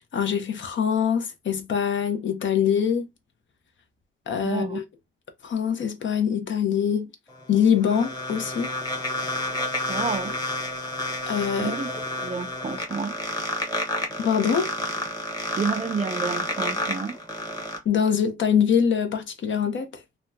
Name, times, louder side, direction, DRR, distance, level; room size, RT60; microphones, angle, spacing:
voice 1, 0.1-3.1 4.3-4.8 5.4-7.1 7.5-8.7 11.3-11.7 14.2-14.7 17.8-20.0, left 7 dB, 65° left, 0.7 m, -24 dB
voice 2, 4.4-4.8 9.9-10.4 11.6-11.9 12.2-13.1 15.6-17.2, right 5 dB, 35° right, 0.5 m, -29 dB
sound 1, 7.3-17.8, left 1 dB, 20° left, 1.0 m, -30 dB
2.8 x 2.1 x 3.4 m
cardioid pair, 95°, 21 cm